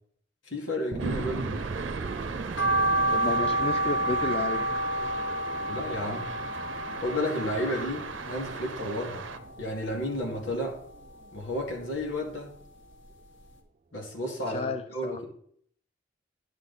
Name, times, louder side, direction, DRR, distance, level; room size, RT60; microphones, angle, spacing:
voice 1, 0.4-1.8 5.7-6.3 6.9-9.3 9.6-10.8 11.3-12.6 13.9-15.2, left 1 dB, 85° left, 0 dB, 2.4 m, -32 dB
sound 1, 0.9-11.9 12.4-12.5, right 3 dB, 40° right, 0.4 m, -39 dB
sound 2, 1.0-9.4, right 5 dB, 80° right, 0.8 m, -39 dB
sound 3, 2.6-8.9 9.2-10.4 10.7-12.2 12.5-12.6 13.1-13.2 13.4-13.5, right 2 dB, 70° left, 1.5 m, -29 dB
voice 2, 3.1-4.7 14.5-15.2, left 3 dB, 30° left, 9 dB, 0.4 m, -32 dB
11.0 x 6.4 x 4.1 m, 0.65 s
head